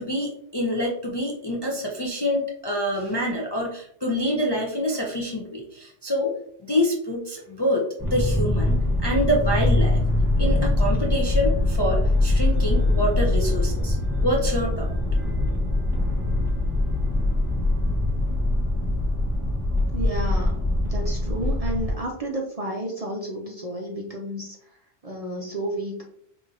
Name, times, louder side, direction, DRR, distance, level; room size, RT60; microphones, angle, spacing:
voice 1, 0.0-6.3 6.7-7.8 8.1-10.0 10.4-14.0 14.2-14.9, equal, 35° left, -2 dB, 0.4 m, -26 dB
sound 1, 8.0-21.9, left 2 dB, 5° right, 1.2 m, -23 dB
voice 2, 19.9-26.0, right 1 dB, 40° right, 0 dB, 0.6 m, -32 dB
4.9 x 2.6 x 2.7 m, 0.67 s
omnidirectional pair, 1.2 m